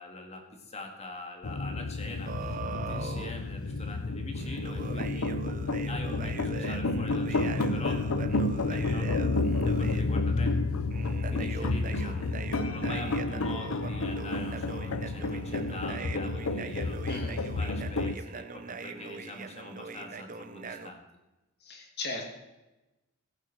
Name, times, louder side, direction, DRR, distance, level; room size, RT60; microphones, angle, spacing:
voice 1, 0.0-5.3 5.9-8.1 8.7-9.1 9.6-10.6 11.3-21.0, left 2 dB, 30° left, 3 dB, 2.0 m, -43 dB
sound 1, 1.4-18.2, left 2 dB, 80° left, 0.7 m, -30 dB
sound 2, 2.3-3.3 4.3-10.0 10.9-20.9, right 4 dB, 40° right, 0.7 m, -41 dB
voice 2, 17.0-17.4 21.7-22.3, left 2 dB, 50° left, 2 dB, 2.8 m, -36 dB
16.0 x 9.0 x 4.5 m, 1.0 s
head